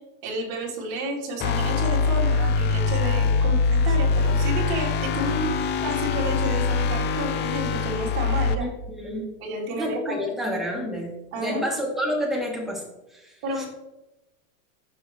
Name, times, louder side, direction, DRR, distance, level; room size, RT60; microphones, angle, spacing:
voice 1, 0.2-8.7 9.4-10.2 11.3-11.7 13.4-13.7, right 1 dB, 50° right, -2 dB, 3.4 m, -31 dB
sound 1, 1.4-8.6, left 4 dB, 25° left, 0.6 m, -23 dB
voice 2, 8.6-9.3 9.8-12.8 13.1-13.7, equal, ahead, -3 dB, 2.5 m, -29 dB
13.0 x 6.0 x 3.2 m, 0.96 s
supercardioid pair, 135°, 40 cm